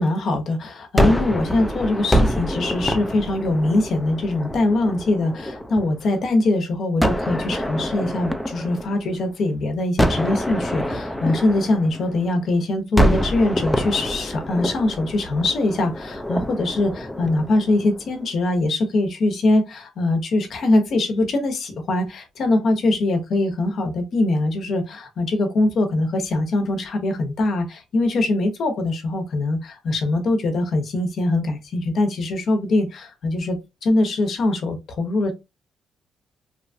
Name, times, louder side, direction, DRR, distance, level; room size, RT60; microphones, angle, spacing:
voice 1, 0.0-35.3, left 2 dB, 60° left, 0.8 m, -22 dB
Gunshot gunfire, 1.0-6.1 7.0-9.4 10.0-12.5 13.0-18.2, equal, 5° left, 0.4 m, -25 dB
2.9 x 2.3 x 2.6 m
cardioid pair, 90°, 0 cm